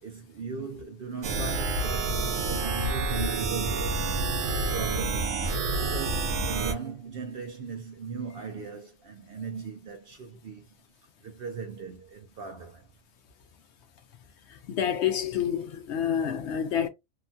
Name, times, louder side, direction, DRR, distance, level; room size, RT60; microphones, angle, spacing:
voice 1, 0.0-2.2 2.5-4.1 4.7-5.4 5.8-10.7 11.2-12.9, right 5 dB, 60° right, 0.6 m, -38 dB
sound 1, 1.2-6.7, right 3 dB, 80° right, 1.0 m, -28 dB
voice 2, 14.5-16.9, left 9 dB, 65° left, 0.8 m, -28 dB
2.9 x 2.2 x 2.6 m
omnidirectional pair, 1.4 m